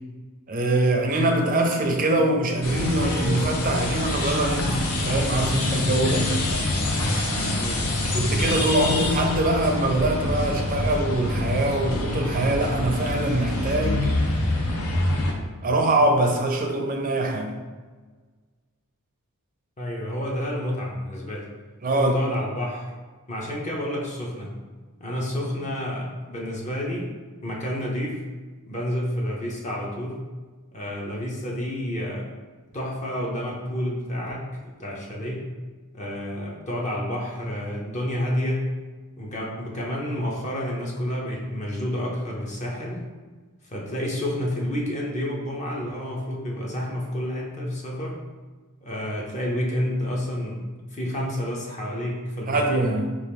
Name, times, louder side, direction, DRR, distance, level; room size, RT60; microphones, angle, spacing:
voice 1, 0.5-6.3 8.1-14.1 15.6-17.5 21.8-22.2 52.5-53.2, right 1 dB, 40° right, 3 dB, 0.5 m, -23 dB
sound 1, 2.6-15.3, left 1 dB, 80° left, 0.7 m, -26 dB
voice 2, 7.5-7.9 8.8-9.0 19.8-21.5 21.9-22.9 23.3-24.5 25.0-27.1 27.4-28.2 28.7-30.2 30.7-32.3 32.7-35.4 35.9-38.7 39.2-43.0 43.6-48.1 48.8-50.6 50.9-52.7, left 1 dB, 30° left, -3 dB, 0.7 m, -29 dB
4.5 x 2.4 x 3.5 m, 1.4 s
head